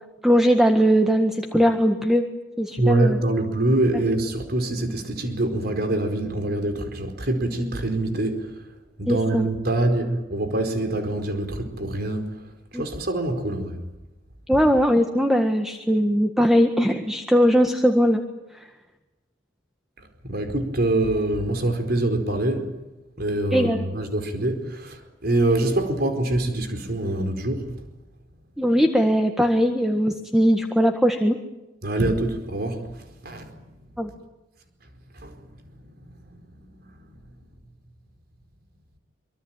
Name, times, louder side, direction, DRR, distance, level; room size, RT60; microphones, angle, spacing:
voice 1, 0.2-2.2 2.6-3.2 9.1-9.5 12.7-12.8 14.5-18.2 23.5-23.8 28.6-31.4 34.0-34.1, equal, ahead, 1.7 m, -20 dB
voice 2, 2.8-8.5 9.0-12.3 12.7-13.8 20.2-22.7 23.2-27.7 31.8-32.8 33.2-33.5 35.2-35.4 36.3-36.7 37.1-37.2, right 1 dB, 55° right, 4.7 m, -25 dB
25.5 x 24.5 x 9.1 m
head